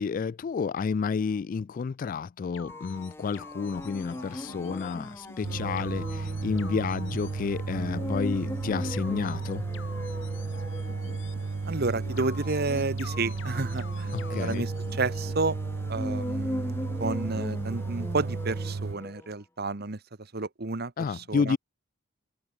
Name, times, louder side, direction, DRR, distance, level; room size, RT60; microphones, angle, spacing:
voice 1, 0.0-9.6 14.1-14.7 21.0-21.6, left 5 dB, 45° left, 0.3 m, -30 dB
sound 1, 2.5-15.3, left 3 dB, 75° left, 4.0 m, -46 dB
sound 2, 2.7-19.3, left 1 dB, 10° left, 0.8 m, -40 dB
sound 3, 5.4-19.0, right 4 dB, 75° right, 0.6 m, -33 dB
voice 2, 11.7-15.6 15.9-16.7 17.0-20.0 20.3-21.6, right 3 dB, 55° right, 1.3 m, -31 dB
head